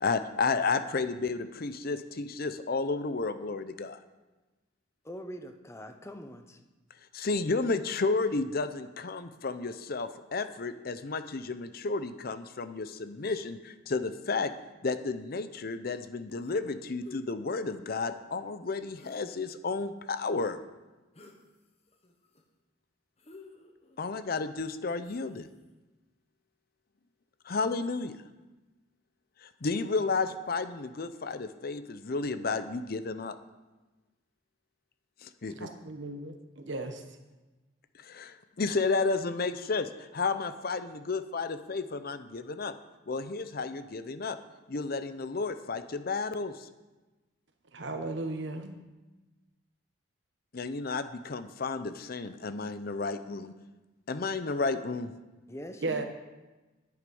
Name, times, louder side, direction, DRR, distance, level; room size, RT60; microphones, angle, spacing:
voice 1, 0.0-4.0 7.1-14.5 14.8-20.6 24.0-25.5 27.5-28.1 29.4-33.4 35.2-35.7 38.0-42.7 43.1-44.4 44.7-46.7 50.5-53.5 54.1-55.1, left 4 dB, 50° left, 0.6 m, -32 dB
voice 2, 5.0-6.6 55.5-56.0, equal, 15° left, 0.7 m, -43 dB
sound 1, 16.4-16.7 17.0-17.2 18.9-19.6 21.1-21.4 21.9-22.4 23.2-24.0 25.0-25.5, left 2 dB, 30° left, 1.1 m, -52 dB
voice 3, 35.5-37.0 47.7-48.8 55.8-56.0, right 2 dB, 60° right, 1.2 m, -35 dB
10.5 x 9.5 x 5.4 m
head